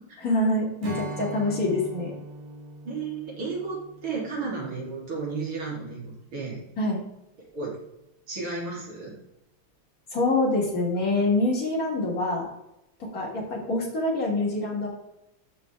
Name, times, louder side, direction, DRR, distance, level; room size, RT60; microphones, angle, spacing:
voice 1, 0.2-2.1 6.8-7.0 10.1-12.4 13.1-14.9, left 2 dB, 40° left, -3 dB, 3.2 m, -25 dB
Strum, 0.8-6.2, right 2 dB, 55° right, 2.2 m, -42 dB
voice 2, 2.8-6.6 7.4-7.8 8.3-9.1, right 4 dB, 75° right, -4 dB, 4.2 m, -33 dB
10.5 x 6.7 x 3.5 m, 0.87 s
omnidirectional pair, 2.3 m